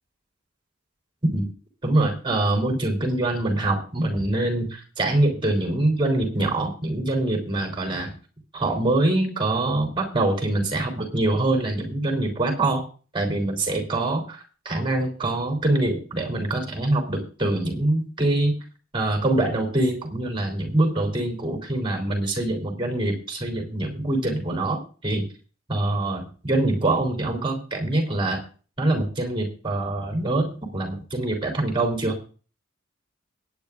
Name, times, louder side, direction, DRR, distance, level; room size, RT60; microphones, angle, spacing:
voice 1, 1.8-8.1 8.5-12.8 13.1-18.6 18.9-25.3 25.7-28.4 28.8-32.2, right 2 dB, 25° right, 2 dB, 3.4 m, -24 dB
22.0 x 9.5 x 2.5 m, 0.37 s
head